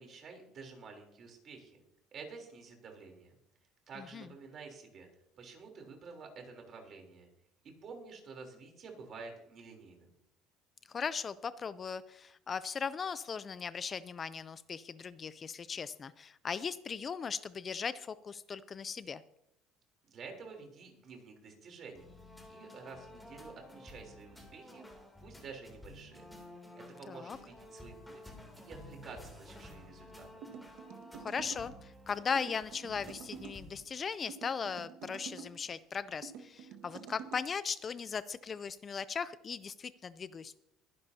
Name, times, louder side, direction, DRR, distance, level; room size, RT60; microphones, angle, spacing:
voice 1, 0.0-1.8 2.1-3.4 3.9-5.1 5.4-7.3 7.8-10.1 20.1-22.1 22.5-24.9 25.2-26.2 27.0-30.4, right 4 dB, 40° right, 3 dB, 3.4 m, -50 dB
voice 2, 10.9-19.2 27.1-27.4 31.2-40.6, left 6 dB, 30° left, 15 dB, 0.4 m, -38 dB
sound 1, 22.0-33.8, left 1 dB, 5° left, 2.8 m, -52 dB
sound 2, 30.4-31.7 32.4-33.6 34.3-35.5 36.2-37.4, right 7 dB, 75° right, 1.6 m, -48 dB
22.5 x 11.0 x 2.8 m, 0.78 s
cardioid pair, 135°, 0 cm